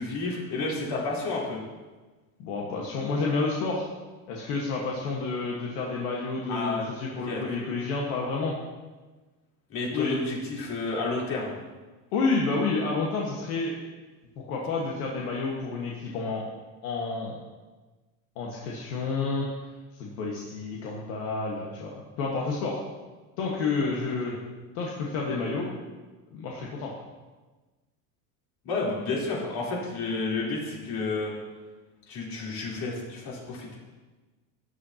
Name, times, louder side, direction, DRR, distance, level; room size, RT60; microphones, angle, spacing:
voice 1, 0.0-1.6 6.5-7.4 9.7-11.5 24.0-24.4 28.6-31.3 32.1-33.8, left 3 dB, 55° left, -4 dB, 3.8 m, -31 dB
voice 2, 2.4-3.9 4.3-8.5 9.9-10.2 12.1-13.7 14.4-16.5 16.8-17.4 18.4-19.5 20.0-22.8 23.4-24.4 24.8-25.7 26.3-26.9, left 4 dB, 80° left, -2 dB, 1.7 m, -30 dB
13.0 x 9.6 x 2.9 m, 1.3 s
supercardioid pair, 125°, 44 cm